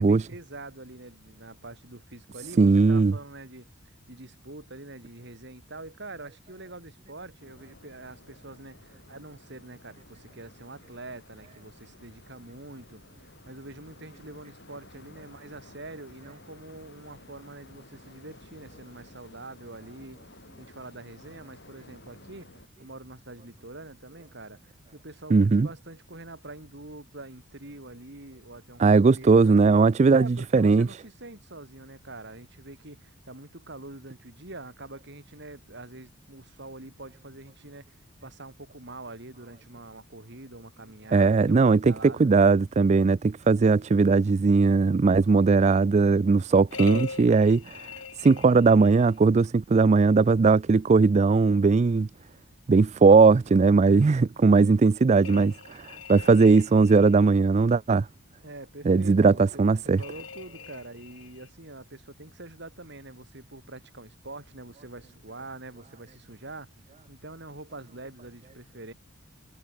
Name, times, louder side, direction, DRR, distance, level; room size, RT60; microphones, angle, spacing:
voice 1, 0.0-3.7 4.1-20.2 20.6-22.5 22.8-24.6 24.9-29.8 30.1-42.3 58.4-66.7 67.1-68.9, right 2 dB, 55° right, 3.5 m, -45 dB
voice 2, 2.6-3.1 25.3-25.7 28.8-30.9 41.1-47.9 48.2-52.1 52.7-58.1 58.9-60.0, right 4 dB, 35° right, 0.3 m, -19 dB
sound 1, 7.4-22.7, left 2 dB, 55° left, 5.9 m, -54 dB
sound 2, 46.7-49.2 55.2-57.3 60.0-61.5, left 4 dB, 80° left, 4.9 m, -41 dB
head